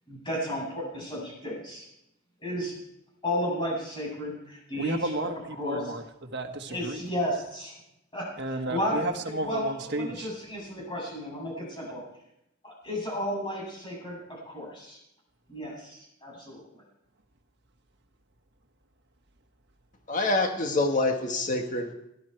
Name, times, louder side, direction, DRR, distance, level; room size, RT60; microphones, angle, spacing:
voice 1, 0.1-1.8 2.4-2.8 3.2-5.3 5.6-5.9 6.7-7.7 8.1-8.3 8.7-9.0 9.4-12.0 12.6-15.0 15.5-16.7, equal, 25° left, -3 dB, 7.7 m, -33 dB
voice 2, 4.8-7.0 8.4-10.3, right 2 dB, 60° right, 5 dB, 1.5 m, -33 dB
voice 3, 20.1-21.9, left 2 dB, 40° left, 4 dB, 1.6 m, -26 dB
18.5 x 12.5 x 4.6 m, 0.82 s
head